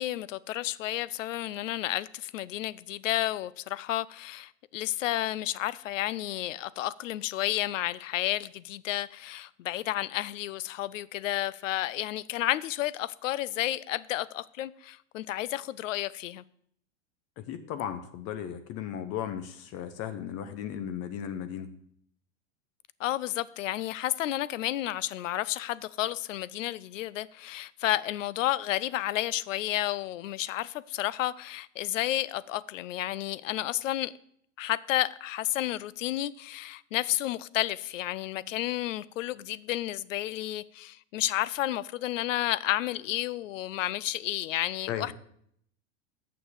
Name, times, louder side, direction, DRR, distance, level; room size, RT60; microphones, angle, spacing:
voice 1, 0.0-16.4 23.0-34.1 34.6-45.1, left 14 dB, 85° left, 0.5 m, -31 dB
voice 2, 17.4-21.7 44.9-45.1, left 9 dB, 40° left, 0.8 m, -36 dB
6.8 x 6.3 x 6.7 m
hypercardioid pair, 120°, 37 cm